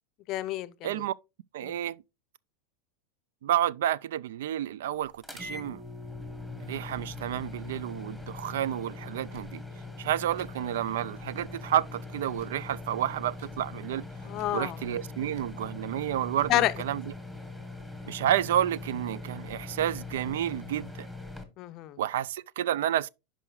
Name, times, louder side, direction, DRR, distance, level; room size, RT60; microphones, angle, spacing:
voice 1, 0.3-1.1 1.6-1.8 14.2-14.8 16.5-16.7 21.6-22.0, left 15 dB, 35° left, 0.6 m, -29 dB
voice 2, 0.8-1.1 1.5-2.0 3.4-5.8 6.7-9.6 10.0-14.0 14.5-17.0 18.1-21.1 22.0-23.1, right 11 dB, 80° right, 0.3 m, -30 dB
sound 1, 5.2-21.4, left 3 dB, 5° right, 1.3 m, -41 dB
Tick / Tick-tock, 9.3-9.5 10.3-10.5 11.3-11.6 12.3-12.6 13.3-13.6 14.3-14.6 15.3-15.6 16.3-16.6, right 4 dB, 55° right, 2.2 m, -55 dB
11.5 x 4.8 x 2.3 m
supercardioid pair, 150°, 0 cm